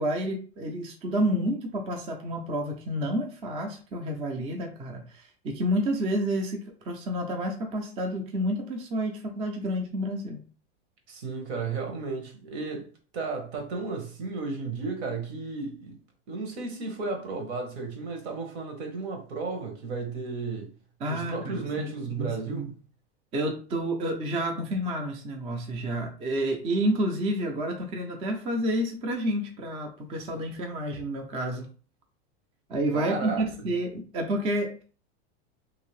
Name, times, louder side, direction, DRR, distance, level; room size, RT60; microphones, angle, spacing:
voice 1, 0.0-10.4 21.0-22.7 23.3-31.7 32.7-34.8, right 1 dB, 20° right, 0.4 m, -30 dB
voice 2, 11.1-16.0 16.3-20.7 21.1-22.7 32.9-33.4, right 4 dB, 75° right, 1.2 m, -34 dB
2.8 x 2.6 x 3.1 m
supercardioid pair, 140°, 33 cm